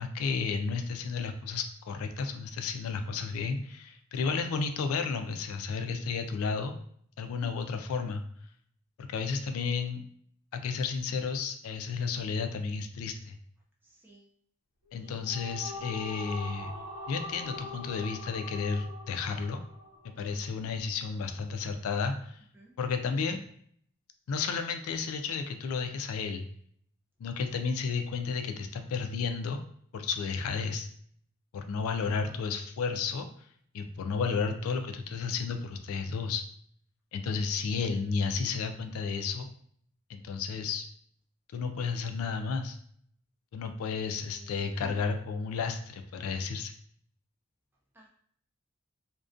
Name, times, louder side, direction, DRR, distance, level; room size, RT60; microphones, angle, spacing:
voice 1, 0.0-6.7 7.2-8.2 9.0-10.0 10.5-13.4 14.9-16.7 17.1-19.6 20.2-22.4 22.8-23.4 24.3-26.4 27.2-29.6 29.9-30.9 31.5-33.3 33.7-36.4 37.1-39.5 40.1-40.9 41.5-42.8 43.5-46.7, left 5 dB, 75° left, 8 dB, 0.3 m, -32 dB
voice 2, 13.8-14.3 15.0-15.3 15.7-16.4 22.5-22.7 32.0-32.4 37.7-38.2 44.1-45.0 47.9-48.1, right 1 dB, 10° right, -2 dB, 0.3 m, -55 dB
sound 1, 14.9-20.4, left 1 dB, 45° left, 0.9 m, -43 dB
2.4 x 2.1 x 2.4 m, 0.62 s
head